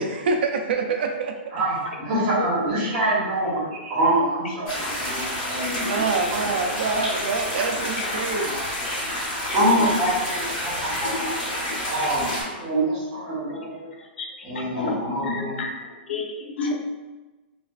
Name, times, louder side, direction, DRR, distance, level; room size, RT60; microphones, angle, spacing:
voice 1, 0.0-1.4 5.7-8.6, right 4 dB, 65° right, 4 dB, 0.3 m, -26 dB
voice 2, 1.5-6.4 9.5-11.2 11.9-13.9 14.4-15.6, right 1 dB, 30° right, -6 dB, 1.1 m, -25 dB
sound 1, 4.7-12.4, left 1 dB, 40° left, 1.4 m, -29 dB
voice 3, 15.3-15.7 16.1-16.7, left 4 dB, 80° left, 1 dB, 0.6 m, -30 dB
3.2 x 2.4 x 2.3 m, 1.2 s
hypercardioid pair, 175°, 6 cm